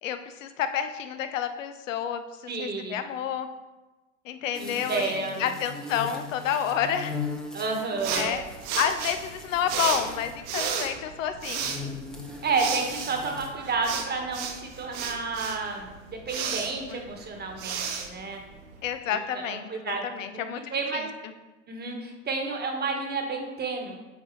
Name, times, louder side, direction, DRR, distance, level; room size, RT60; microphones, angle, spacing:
voice 1, 0.0-3.5 4.3-5.1 5.4-7.1 8.1-8.4 8.8-11.7 16.9-17.0 18.8-21.0, left 9 dB, 75° left, 9 dB, 0.7 m, -30 dB
voice 2, 2.5-3.0 4.6-5.4 7.5-8.4 12.4-18.4 19.1-21.1 21.7-24.0, right 4 dB, 25° right, 2 dB, 1.2 m, -31 dB
sound 1, 4.5-10.5 11.6-13.5, left 4 dB, ahead, 0.8 m, -39 dB
sound 2, 8.0-18.9, right 6 dB, 65° right, 1.1 m, -34 dB
8.4 x 4.1 x 3.1 m, 1.1 s
hypercardioid pair, 85°, 39 cm